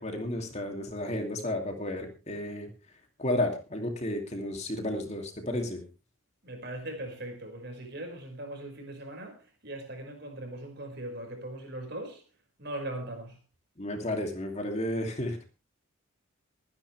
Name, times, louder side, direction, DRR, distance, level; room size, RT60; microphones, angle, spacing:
voice 1, 0.0-2.7 3.2-5.8 13.8-15.4, left 1 dB, 30° left, 2.6 m, -32 dB
voice 2, 6.4-12.2 12.6-13.4, right 1 dB, 50° right, 5.2 m, -40 dB
23.0 x 10.0 x 3.3 m
head